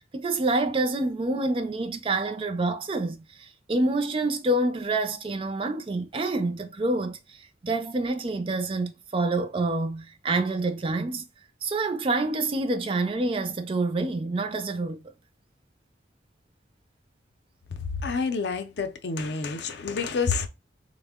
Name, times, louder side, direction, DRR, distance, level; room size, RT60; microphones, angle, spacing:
voice 1, 0.1-7.2 7.6-11.2 11.6-15.0, right 2 dB, 30° right, 0.4 m, -27 dB
voice 2, 17.8-20.5, left 5 dB, 70° left, 0.5 m, -28 dB
3.4 x 2.1 x 3.5 m
head